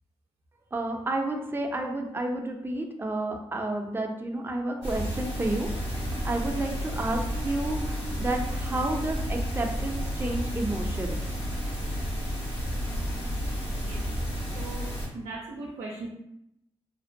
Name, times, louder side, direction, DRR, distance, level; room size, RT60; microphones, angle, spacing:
voice 1, 0.7-11.2, right 2 dB, 20° right, 2 dB, 0.5 m, -31 dB
sound 1, 4.8-15.1, equal, 60° left, 1.2 m, -31 dB
voice 2, 14.5-14.9 15.1-16.1, right 3 dB, 90° right, -2 dB, 0.4 m, -38 dB
2.5 x 2.1 x 2.6 m, 0.81 s
supercardioid pair, 50°, 11 cm